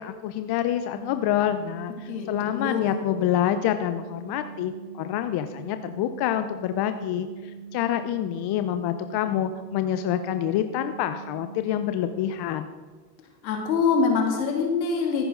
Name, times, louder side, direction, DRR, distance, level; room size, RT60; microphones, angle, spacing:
voice 1, 0.0-12.7, left 11 dB, 50° left, 9 dB, 0.9 m, -27 dB
sound 1, 0.9-12.1, right 6 dB, 60° right, 2.0 m, -42 dB
voice 2, 2.1-3.0 13.4-15.2, left 5 dB, 85° left, 1 dB, 2.8 m, -24 dB
14.0 x 11.0 x 3.9 m, 1.5 s
hypercardioid pair, 75°, 50 cm